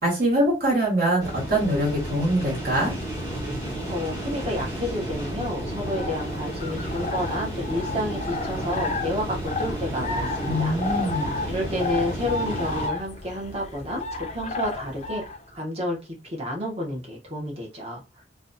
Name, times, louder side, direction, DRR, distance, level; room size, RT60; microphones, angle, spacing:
voice 1, 0.0-2.9 10.5-11.3, right 1 dB, 60° right, 1.2 m, -23 dB
sound 1, 1.2-12.9, right 1 dB, 15° right, 1.2 m, -32 dB
voice 2, 3.9-10.8 11.5-15.2 15.5-16.0 16.2-18.0, left 1 dB, 35° right, 0.9 m, -30 dB
sound 2, 5.7-15.4, left 3 dB, 35° left, 0.4 m, -33 dB
2.6 x 2.2 x 2.5 m
head